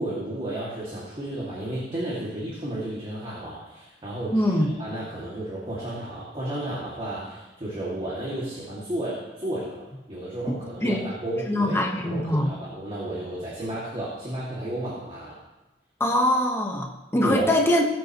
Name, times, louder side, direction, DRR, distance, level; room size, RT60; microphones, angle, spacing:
voice 1, 0.0-9.8 10.1-15.4 17.2-17.5, right 1 dB, 30° right, -6 dB, 2.3 m, -32 dB
voice 2, 4.3-4.7 10.5-11.1 11.5-12.5 16.0-17.9, left 1 dB, 15° left, 1 dB, 1.3 m, -23 dB
19.5 x 8.1 x 3.1 m, 1.1 s
head